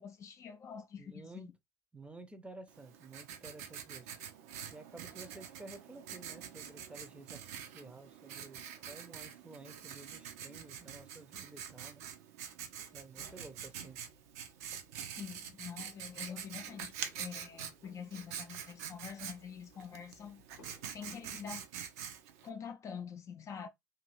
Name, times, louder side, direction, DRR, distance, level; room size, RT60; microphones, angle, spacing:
voice 1, 0.0-1.5 15.2-20.4 20.9-21.7 22.4-23.7, left 7 dB, 35° left, 0.5 m, -46 dB
voice 2, 1.0-1.5 1.9-4.1 4.7-12.1 12.9-14.0, right 2 dB, 15° right, 0.6 m, -52 dB
Writing, 2.7-22.5, right 8 dB, 65° right, 0.5 m, -46 dB
sound 1, 12.5-21.7, left 3 dB, 75° left, 0.8 m, -64 dB
2.6 x 2.6 x 3.1 m
figure-of-eight pair, 60°, 9 cm